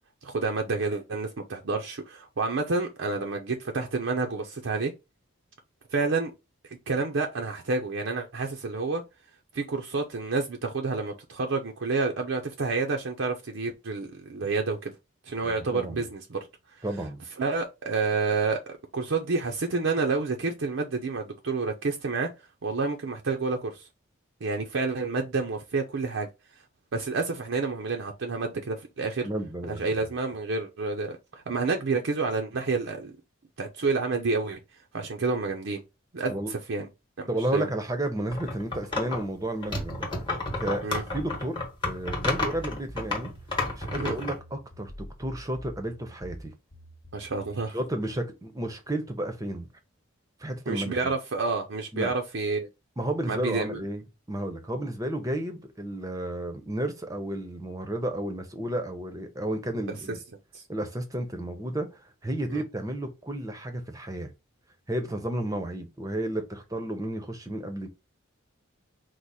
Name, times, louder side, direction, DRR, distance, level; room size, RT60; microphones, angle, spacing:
voice 1, 0.2-4.9 5.9-6.3 6.6-9.0 9.5-14.9 15.3-16.5 16.7-16.8 17.4-22.3 22.6-23.9 24.4-26.3 26.9-29.3 29.7-33.1 33.6-34.6 34.9-35.8 36.1-36.9 37.2-37.7 40.8-41.0 44.0-44.1 47.1-47.8 50.7-52.7 53.3-53.8 60.5-60.6 62.5-62.6, right 4 dB, 65° right, 0.5 m, -29 dB
voice 2, 15.7-16.0 16.8-17.2 29.2-29.8 36.3-36.5 37.3-40.1 40.6-40.8 41.1-41.6 41.8-43.3 43.8-46.5 47.7-49.7 50.4-51.0 51.9-52.2 53.0-54.0 54.3-60.2 60.7-61.9 62.2-64.3 64.9-67.9, right 1 dB, 15° right, 0.7 m, -32 dB
sound 1, 38.3-39.2 39.6-44.4, left 2 dB, 20° left, 1.0 m, -31 dB
sound 2, 42.5-47.7, equal, 45° left, 0.9 m, -46 dB
4.6 x 2.1 x 4.1 m
head